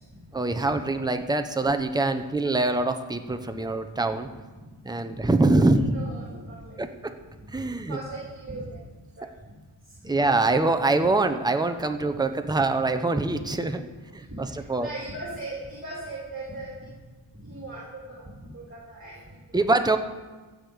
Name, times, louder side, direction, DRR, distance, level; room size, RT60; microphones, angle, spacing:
voice 1, 0.3-4.3 4.8-5.8 6.8-7.1 7.5-8.0 10.0-13.9 14.1-14.9 19.5-20.0, right 2 dB, 10° right, 7 dB, 0.7 m, -24 dB
voice 2, 4.5-5.3 5.6-6.8 7.5-7.6 7.9-8.9 9.2-9.3 9.8-9.9 13.3-13.4 14.2-16.9 17.3-19.6, right 1 dB, 25° right, -5 dB, 3.0 m, -39 dB
15.5 x 6.7 x 5.1 m, 1.3 s
wide cardioid pair, 85°, 47 cm